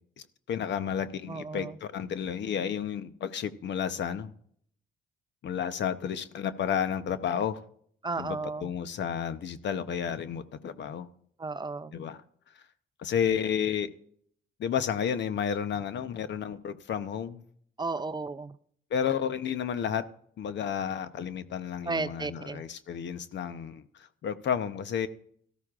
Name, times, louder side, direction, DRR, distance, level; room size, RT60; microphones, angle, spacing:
voice 1, 0.2-4.3 5.4-7.6 8.2-11.1 11.9-12.2 12.5-12.6 13.0-13.9 14.6-17.4 18.9-20.0 20.4-25.1, left 8 dB, 65° left, 12 dB, 0.8 m, -31 dB
voice 2, 1.3-1.8 8.0-8.7 11.4-12.0 17.8-18.6 21.9-22.6, right 3 dB, 20° right, 13 dB, 0.5 m, -34 dB
17.5 x 13.5 x 2.5 m, 0.63 s
cardioid pair, 90°, 20 cm